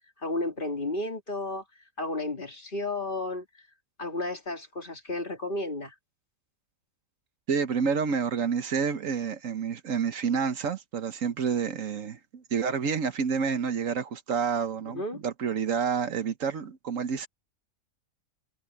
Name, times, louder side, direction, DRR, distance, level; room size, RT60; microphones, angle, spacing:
voice 1, 0.2-1.6 2.0-3.7 4.0-5.9 14.7-15.2, left 2 dB, 35° left, 2.9 m, -33 dB
voice 2, 7.5-17.3, right 6 dB, 70° right, 1.4 m, -29 dB
open air
omnidirectional pair, 1.4 m